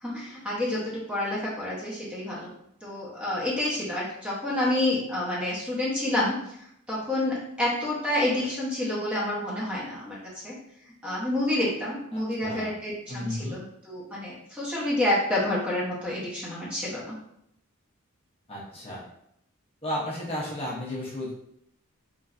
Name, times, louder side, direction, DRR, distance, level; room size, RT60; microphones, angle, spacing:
voice 1, 0.0-2.5 2.8-6.4 6.9-10.2 10.4-10.5 11.0-13.6 13.8-17.1, left 1 dB, 5° right, -7 dB, 0.8 m, -28 dB
voice 2, 12.1-12.7 13.1-13.6 18.5-19.0 19.8-21.3, left 1 dB, 25° left, -6 dB, 0.7 m, -33 dB
3.1 x 2.5 x 2.4 m, 0.74 s
head